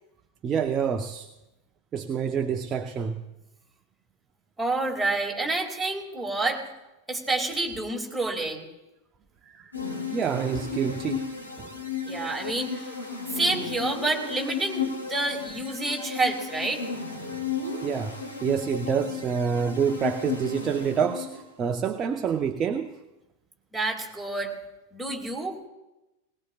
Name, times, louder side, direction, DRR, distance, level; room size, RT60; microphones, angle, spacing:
voice 1, 0.4-1.3 1.9-3.2 9.4-9.7 10.1-11.3 11.6-11.7 17.8-22.9, right 7 dB, 25° right, 6 dB, 0.7 m, -27 dB
voice 2, 4.6-6.6 7.1-8.7 12.1-12.9 13.3-16.8 23.7-24.5 24.9-25.6, right 2 dB, 5° right, 0 dB, 2.5 m, -28 dB
sound 1, 9.7-21.5, left 5 dB, 80° left, 3.0 m, -34 dB
19.5 x 19.0 x 2.4 m, 0.98 s
figure-of-eight pair, 90°, 0 cm